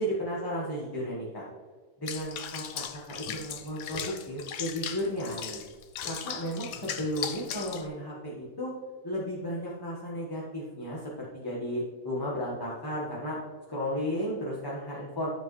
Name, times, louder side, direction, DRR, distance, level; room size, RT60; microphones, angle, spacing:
voice 1, 0.0-1.4 2.0-5.6 6.1-8.7 9.0-13.4 13.7-15.3, equal, 15° left, -6 dB, 1.3 m, -34 dB
Water / Bathtub (filling or washing), 2.1-7.9, left 8 dB, 70° left, 1.1 m, -38 dB
12.0 x 5.2 x 3.2 m, 1.5 s
omnidirectional pair, 1.6 m